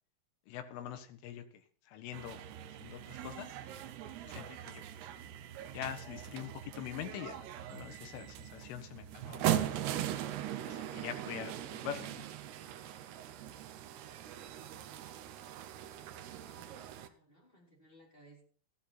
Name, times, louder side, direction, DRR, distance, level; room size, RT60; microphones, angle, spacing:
voice 1, 0.5-2.5 2.8-3.5 4.3-4.8 5.7-7.4 7.7-9.7 10.7-12.3, left 10 dB, 75° left, 3.7 m, -44 dB
sound 1, 2.1-17.1, right 11 dB, 80° right, 2.4 m, -40 dB
voice 2, 15.4-18.4, right 1 dB, 10° left, 3.4 m, -63 dB
14.5 x 12.0 x 4.3 m
omnidirectional pair, 5.9 m